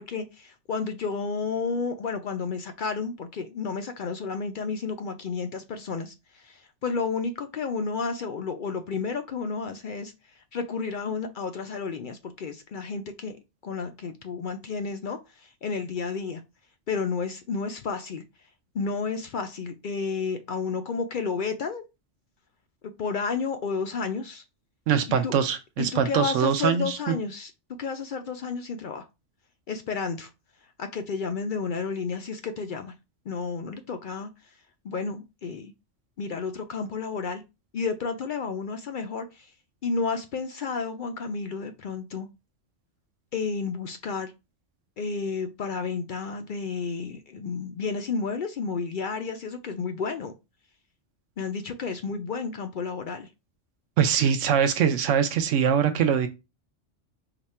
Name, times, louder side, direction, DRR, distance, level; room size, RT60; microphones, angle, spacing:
voice 1, 0.0-6.1 6.4-10.1 10.5-13.4 13.6-16.4 16.9-18.2 18.7-21.8 22.8-24.4 25.1-25.3 25.8-27.5 27.8-29.0 29.7-30.3 30.8-32.9 33.3-34.3 34.8-35.7 36.2-37.4 37.7-39.4 39.8-42.3 43.3-44.3 45.0-50.3 51.4-53.3, left 5 dB, 60° left, 0.5 m, -31 dB
voice 2, 24.9-27.1 54.0-56.3, right 7 dB, 85° right, 0.9 m, -23 dB
4.9 x 2.3 x 4.2 m
omnidirectional pair, 1.2 m